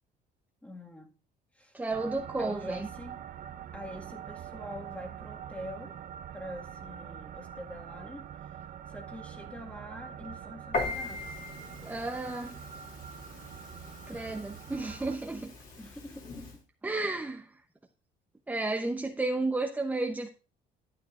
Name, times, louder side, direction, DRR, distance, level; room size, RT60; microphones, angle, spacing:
voice 1, 0.6-1.1 1.5-1.8 2.4-3.3 3.7-6.0 6.3-8.3 8.9-11.4 14.1-14.5 15.7-16.6, equal, 10° left, 1.8 m, -45 dB
voice 2, 1.7-2.9 11.8-12.6 14.1-15.5 16.8-17.5 18.5-20.3, right 2 dB, 10° right, 0.8 m, -32 dB
sound 1, 1.9-15.2, right 9 dB, 55° right, 0.6 m, -44 dB
Piano, 10.7-16.6, left 3 dB, 50° left, 2.7 m, -40 dB
12.0 x 8.7 x 2.5 m
cardioid pair, 110°, 17 cm